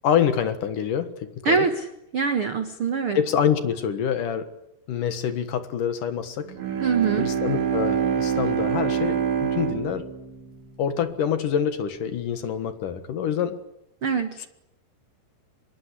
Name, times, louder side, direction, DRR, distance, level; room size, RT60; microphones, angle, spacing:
voice 1, 0.0-1.7 3.1-4.5 4.9-6.5 7.2-10.1 10.8-13.6 14.4-14.5, left 8 dB, 60° left, 11 dB, 2.7 m, -26 dB
voice 2, 1.4-1.8 2.1-3.2 6.8-7.3 14.0-14.4, right 5 dB, 90° right, 9 dB, 1.1 m, -23 dB
Bowed string instrument, 6.5-11.3, right 8 dB, 55° right, 4.4 m, -26 dB
25.0 x 21.5 x 10.0 m, 0.82 s
omnidirectional pair, 5.0 m